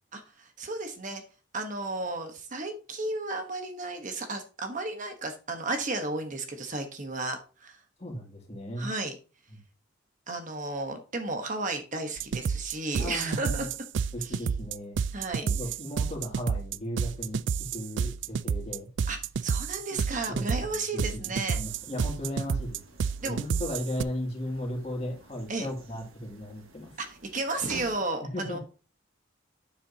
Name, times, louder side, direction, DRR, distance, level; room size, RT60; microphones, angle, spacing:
voice 1, 0.1-1.2 1.5-7.8 8.8-9.2 10.3-13.7 14.2-14.5 15.1-15.5 19.1-21.6 23.2-23.4 25.5-25.7 27.0-28.6, right 2 dB, 40° right, 5 dB, 1.2 m, -33 dB
voice 2, 8.0-8.9 13.0-13.7 14.1-15.0 15.4-17.4 17.7-18.9 19.9-20.0 20.3-20.8 21.1-22.8 23.2-26.9 28.3-28.6, equal, 30° left, 0 dB, 2.5 m, -36 dB
sound 1, 12.2-24.0, right 6 dB, 60° right, 0.3 m, -30 dB
sound 2, 21.6-28.1, right 3 dB, 90° right, 1.6 m, -50 dB
9.2 x 7.6 x 2.8 m, 0.34 s
head